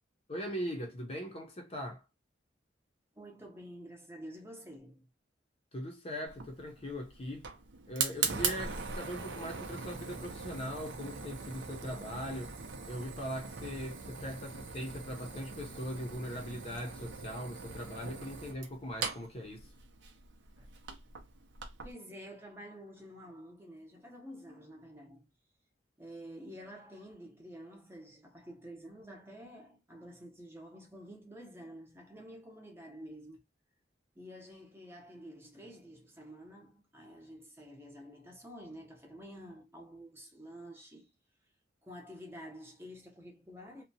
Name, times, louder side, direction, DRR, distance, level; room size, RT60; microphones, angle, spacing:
voice 1, 0.3-2.0 5.7-7.5 7.9-12.5 12.9-19.7, equal, 30° left, 0.6 m, -40 dB
voice 2, 3.1-5.1 20.6-20.7 21.8-25.3 26.0-33.4 34.2-41.1 41.8-43.8, equal, 15° right, 0.7 m, -49 dB
Fire, 6.3-21.9, right 5 dB, 75° right, 0.6 m, -41 dB
2.7 x 2.1 x 2.7 m
head